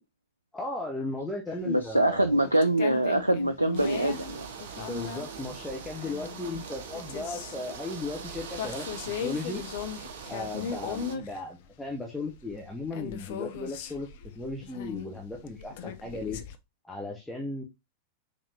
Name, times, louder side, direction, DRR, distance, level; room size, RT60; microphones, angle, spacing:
voice 1, 0.5-2.5 4.7-8.9 9.2-9.6 10.3-14.1 14.3-16.4 16.8-17.6, left 2 dB, 5° left, -1 dB, 1.0 m, -36 dB
voice 2, 1.7-4.5 11.0-11.2, right 1 dB, 85° right, 10 dB, 0.4 m, -24 dB
sound 1, 1.9-2.0 2.4-7.6 8.3-8.4 8.6-11.4 11.7-11.8 12.0-16.6, left 8 dB, 55° left, 0.6 m, -38 dB
sound 2, 3.7-11.1, right 6 dB, 55° right, 0.8 m, -42 dB
5.1 x 3.5 x 2.8 m, 0.22 s
figure-of-eight pair, 90°, 0 cm